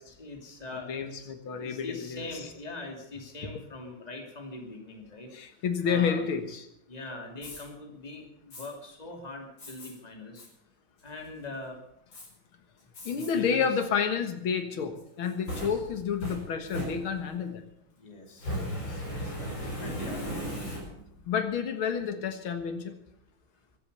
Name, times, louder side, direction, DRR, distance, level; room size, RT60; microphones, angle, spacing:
voice 1, 0.1-1.3 1.6-5.3 5.8-6.2 6.9-10.4 11.0-11.8 13.1-13.7 15.5-15.8 18.0-20.7, left 2 dB, 20° left, 1 dB, 2.9 m, -42 dB
voice 2, 0.7-2.5 5.3-6.7 13.0-17.6 21.3-23.0, left 6 dB, 90° left, 8 dB, 2.3 m, -30 dB
Fire, 7.3-7.6 8.5-8.7 9.6-9.9 10.4-10.5 11.0-11.4 12.1-12.3 12.9-13.3 13.8-13.9 15.0-17.4 18.3-21.2, equal, 70° left, 5.7 m, -37 dB
23.5 x 8.3 x 6.9 m, 0.78 s
omnidirectional pair, 2.2 m